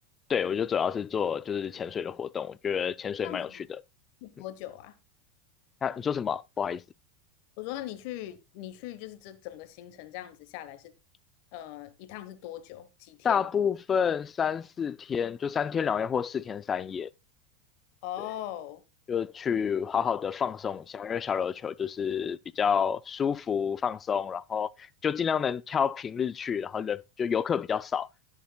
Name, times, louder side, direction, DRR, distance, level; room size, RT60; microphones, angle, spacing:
voice 1, 0.3-3.5 5.8-6.8 13.2-17.1 19.1-28.1, left 7 dB, 30° left, 0.4 m, -29 dB
voice 2, 3.2-3.5 4.2-5.0 7.6-10.9 11.5-13.5 18.0-18.8, left 13 dB, 60° left, 1.1 m, -40 dB
16.0 x 7.3 x 2.2 m
hypercardioid pair, 105°, 0 cm